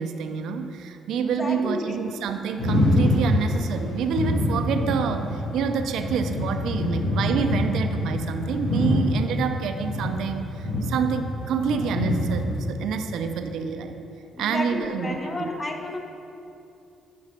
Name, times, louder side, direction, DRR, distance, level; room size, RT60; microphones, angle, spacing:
voice 1, 0.0-14.0 14.4-15.5, right 6 dB, 80° right, 7 dB, 0.4 m, -28 dB
voice 2, 1.2-2.0 14.3-16.0, left 2 dB, 30° left, 2 dB, 1.0 m, -31 dB
sound 1, 2.6-9.1 9.5-12.5, left 1 dB, 85° left, 1.6 m, -25 dB
7.3 x 5.3 x 5.2 m, 2.7 s
cardioid pair, 90°, 0 cm